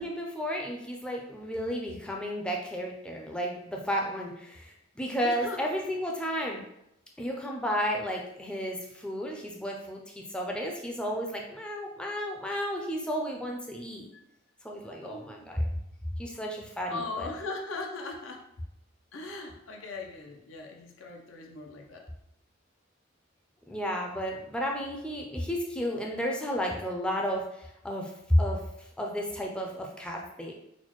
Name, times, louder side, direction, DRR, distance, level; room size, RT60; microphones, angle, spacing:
voice 1, 0.0-6.6 7.2-14.1 14.6-15.7 16.2-17.3 23.7-28.1 28.4-28.6 29.0-30.5, equal, 5° left, -1 dB, 0.4 m, -33 dB
voice 2, 5.2-5.9 14.1-14.2 15.0-15.5 16.9-18.5 19.1-22.1, left 3 dB, 85° left, 2 dB, 0.6 m, -39 dB
4.1 x 2.2 x 3.0 m, 0.80 s
head